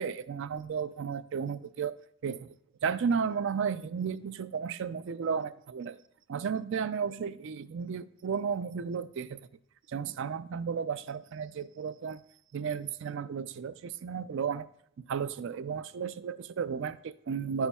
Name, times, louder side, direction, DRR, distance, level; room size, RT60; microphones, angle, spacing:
voice 1, 0.0-2.0 2.2-2.5 2.8-6.0 6.3-9.5 9.9-12.2 12.5-14.7 15.1-17.7, right 6 dB, 55° right, 0.3 m, -33 dB
10.0 x 6.9 x 2.3 m
head